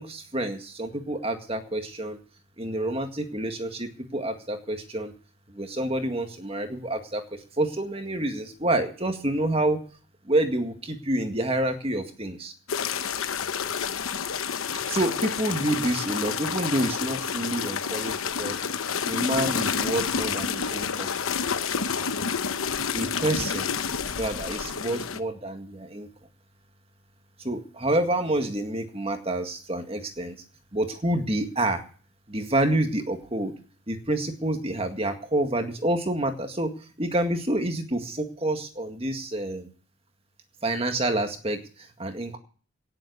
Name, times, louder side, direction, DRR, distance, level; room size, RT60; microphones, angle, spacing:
voice 1, 0.0-2.2 2.6-5.1 5.5-9.8 10.2-12.5 14.7-18.6 19.0-21.1 22.9-23.7 24.2-26.1 27.4-30.4 30.7-31.8 32.3-33.5 33.9-36.7 37.0-39.7 40.6-42.4, right 1 dB, 30° right, 6 dB, 1.9 m, -28 dB
sound 1, 12.7-25.2, left 6 dB, 90° left, 1.0 m, -29 dB
18.0 x 7.8 x 6.7 m, 0.42 s
head